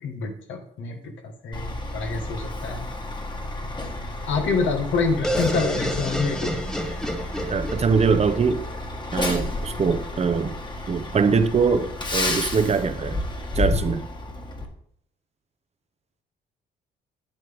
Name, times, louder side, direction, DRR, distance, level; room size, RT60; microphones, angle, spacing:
voice 1, 0.0-1.1 1.4-2.8 4.3-6.6, left 4 dB, 75° left, 1.7 m, -26 dB
Truck, 1.5-14.7, left 2 dB, 25° left, 1.6 m, -31 dB
sound 1, 5.2-9.0, equal, 5° left, 1.0 m, -29 dB
voice 2, 7.5-8.6 9.1-10.6 10.9-13.2 13.5-14.0, right 5 dB, 30° right, 0.8 m, -22 dB
9.1 x 7.8 x 3.6 m
cardioid pair, 90°, 20 cm